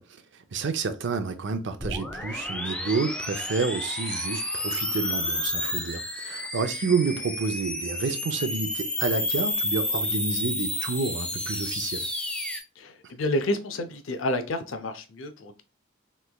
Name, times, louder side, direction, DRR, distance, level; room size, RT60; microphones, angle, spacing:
voice 1, 0.0-12.1, right 4 dB, 65° right, 0.5 m, -29 dB
sound 1, 1.8-12.6, left 1 dB, 5° left, 0.4 m, -30 dB
voice 2, 12.8-15.6, left 1 dB, 85° left, 0.5 m, -29 dB
3.3 x 3.1 x 2.2 m
head